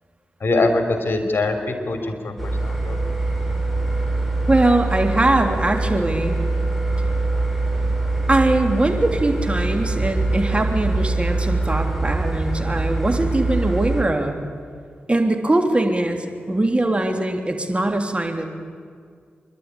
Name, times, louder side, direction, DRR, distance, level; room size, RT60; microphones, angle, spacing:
voice 1, 0.4-3.0, left 2 dB, 60° left, 6 dB, 3.4 m, -23 dB
sound 1, 2.4-14.0, right 2 dB, ahead, 5.5 m, -23 dB
voice 2, 4.5-6.4 8.3-14.3 15.1-18.4, right 2 dB, 25° right, 4 dB, 3.3 m, -21 dB
25.5 x 12.0 x 10.0 m, 2.1 s
supercardioid pair, 40°, 4 cm